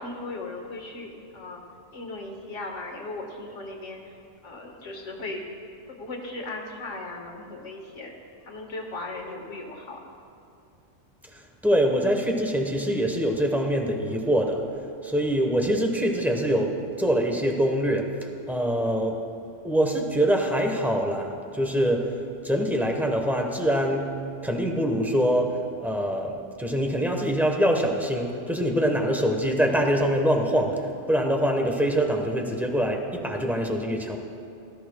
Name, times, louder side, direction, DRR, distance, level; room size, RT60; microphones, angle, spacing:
voice 1, 0.0-1.6 1.9-4.0 4.4-5.4 5.9-8.1 8.5-10.0, left 2 dB, 90° left, 1 dB, 1.8 m, -37 dB
voice 2, 11.3-14.6 15.0-18.2 18.5-19.2 19.6-22.1 22.4-24.2 24.4-34.2, equal, ahead, 2 dB, 0.9 m, -24 dB
18.5 x 13.5 x 2.2 m, 2.5 s
omnidirectional pair, 1.2 m